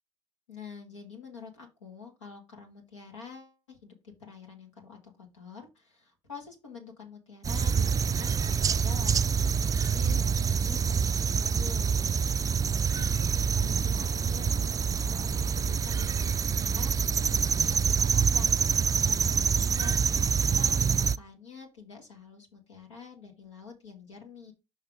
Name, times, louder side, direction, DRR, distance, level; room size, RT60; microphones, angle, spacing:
voice 1, 0.5-9.2 9.6-12.1 13.0-13.3 13.5-18.5 19.0-24.5, left 5 dB, 85° left, 1 dB, 2.0 m, -47 dB
sound 1, 7.4-21.2, right 6 dB, 25° right, 0.3 m, -26 dB
6.5 x 5.6 x 3.7 m, 0.26 s
figure-of-eight pair, 55°, 15 cm